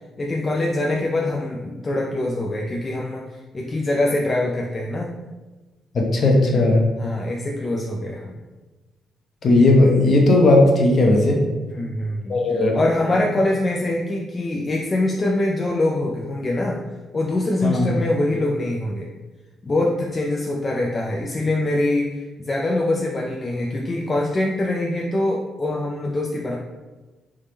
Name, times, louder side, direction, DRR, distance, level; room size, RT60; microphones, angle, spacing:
voice 1, 0.2-5.1 7.0-8.4 11.7-16.8 17.1-19.1 19.6-26.6, left 1 dB, 30° left, -2 dB, 0.4 m, -24 dB
voice 2, 5.9-6.8 9.4-11.4 12.3-12.8 17.6-17.9, left 2 dB, 50° left, 1 dB, 0.8 m, -16 dB
3.5 x 2.8 x 3.3 m, 1.2 s
cardioid pair, 90°, 0 cm